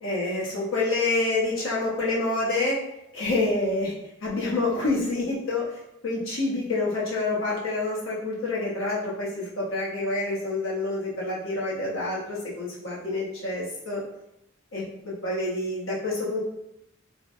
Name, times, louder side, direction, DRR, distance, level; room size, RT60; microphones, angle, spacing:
voice 1, 0.0-2.8 3.1-3.9 4.2-14.0 14.7-16.4, left 2 dB, 80° left, -6 dB, 0.9 m, -27 dB
3.2 x 2.0 x 2.5 m, 0.85 s
head